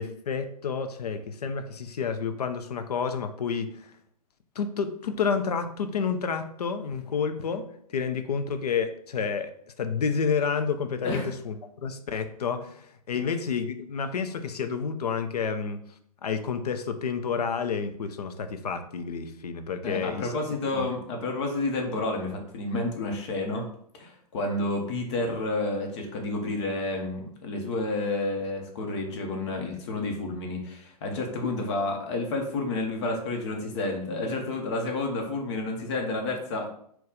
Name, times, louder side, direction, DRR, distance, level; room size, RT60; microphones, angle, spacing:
voice 1, 0.0-3.9 4.6-15.8 16.2-20.3 20.7-20.9, left 6 dB, 75° left, 8 dB, 0.6 m, -30 dB
voice 2, 19.8-23.7 23.9-36.7, left 2 dB, 45° left, 2 dB, 0.9 m, -30 dB
4.1 x 2.3 x 3.8 m, 0.66 s
hypercardioid pair, 125°, 20 cm